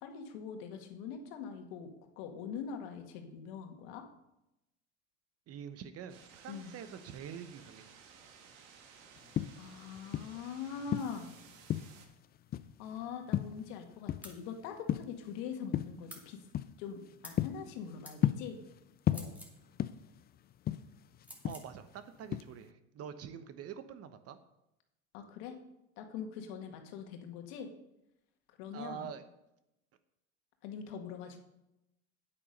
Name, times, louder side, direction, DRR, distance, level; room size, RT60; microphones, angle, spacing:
voice 1, 0.0-4.0 6.5-6.7 9.6-11.3 12.8-16.5 16.8-18.6 19.1-19.3 25.1-25.6 26.0-27.7 28.5-29.1 30.6-31.4, left 6 dB, 65° left, 4 dB, 1.9 m, -43 dB
voice 2, 5.5-7.9 21.4-24.4 28.7-29.2, right 8 dB, 40° right, 11 dB, 1.0 m, -46 dB
sound 1, 6.1-12.1, right 6 dB, 70° right, 2.0 m, -57 dB
sound 2, 9.2-10.4 10.9-12.1 12.5-12.9 13.3-14.5 14.7-15.3 15.7-16.0 16.5-16.8 17.1-18.8 19.1-20.2 20.5-22.0 22.3-22.6, left 11 dB, 25° left, 0.4 m, -33 dB
sound 3, 14.2-14.4 16.1-16.3 17.2-17.4 18.0-18.2 19.1-19.6 21.2-21.7, equal, 5° right, 2.4 m, -50 dB
9.0 x 8.4 x 5.3 m, 0.88 s
supercardioid pair, 100°, 36 cm